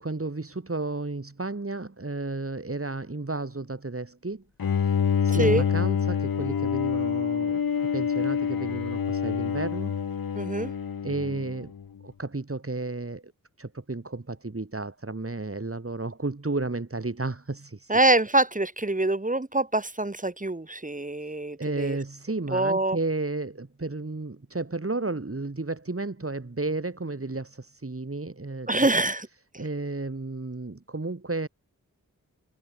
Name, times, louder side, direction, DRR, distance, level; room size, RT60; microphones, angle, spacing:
voice 1, 0.0-4.4 4.8-5.0 5.2-7.6 7.9-10.0 11.0-11.7 12.0-13.3 13.6-18.0 21.2-21.3 21.6-28.9 29.6-31.5, right 3 dB, 40° right, 7.2 m, -32 dB
Bowed string instrument, 4.6-11.8, left 7 dB, 85° left, 2.0 m, -27 dB
voice 2, 5.3-5.6 10.4-10.7 17.9-22.0 22.5-23.0 28.7-29.3, right 2 dB, 25° right, 2.0 m, -25 dB
cardioid pair, 40°, 35 cm